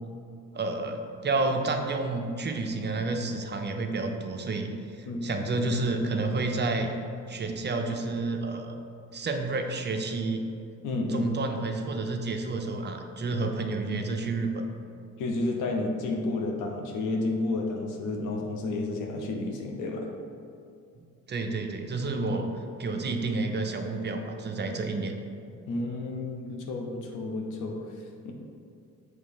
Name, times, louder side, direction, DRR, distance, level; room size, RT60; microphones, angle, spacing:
voice 1, 0.5-6.9 7.3-8.8 9.1-10.4 11.1-14.6 21.0-22.5 22.8-25.1, right 3 dB, 35° right, 4 dB, 0.7 m, -30 dB
voice 2, 5.1-5.5 10.8-11.3 15.2-20.1 25.7-28.3, left 2 dB, 90° left, 1 dB, 0.9 m, -31 dB
6.5 x 3.2 x 5.3 m, 2.5 s
cardioid pair, 90°, 30 cm